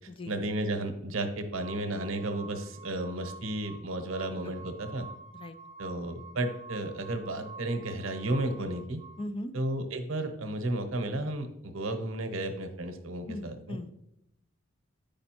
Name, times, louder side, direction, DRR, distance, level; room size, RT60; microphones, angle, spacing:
voice 1, 0.3-5.1 5.8-9.0 9.5-13.6, right 1 dB, 80° right, 6 dB, 0.8 m, -33 dB
sound 1, 1.6-9.2, right 3 dB, 35° right, 0.4 m, -48 dB
voice 2, 4.2-4.5 5.3-5.6 9.2-9.5 13.3-13.9, left 1 dB, 25° left, 10 dB, 0.4 m, -39 dB
8.9 x 5.2 x 2.9 m, 0.80 s
head